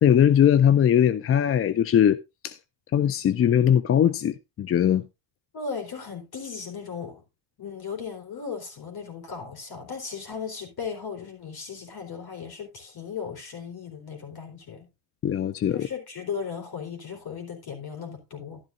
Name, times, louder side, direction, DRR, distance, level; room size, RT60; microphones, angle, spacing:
voice 1, 0.0-2.2 2.4-2.6 2.9-5.1 15.2-15.9, left 9 dB, 30° left, 0.4 m, -20 dB
voice 2, 5.5-7.2 7.6-14.9 15.7-18.6, left 6 dB, 45° left, 4.1 m, -36 dB
12.0 x 10.5 x 2.6 m
supercardioid pair, 80°, 49 cm